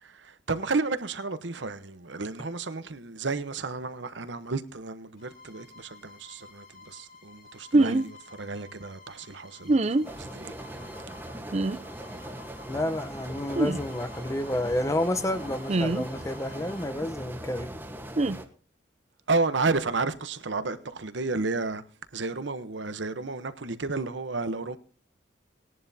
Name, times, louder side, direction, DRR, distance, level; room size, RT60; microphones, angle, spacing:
voice 1, 0.1-10.5 19.3-21.8 22.1-24.8, right 3 dB, 70° right, 1.0 m, -32 dB
Bowed string instrument, 5.2-17.0, left 4 dB, 50° left, 4.1 m, -52 dB
sound 1, 7.7-8.0 9.7-10.1 11.5-11.8 13.6-13.8 15.7-16.0 18.2-18.4, right 2 dB, 35° right, 0.5 m, -23 dB
sound 2, 10.0-18.5, right 1 dB, 10° right, 1.2 m, -40 dB
voice 2, 12.7-17.7, left 1 dB, 15° left, 0.8 m, -30 dB
19.5 x 11.0 x 2.8 m
head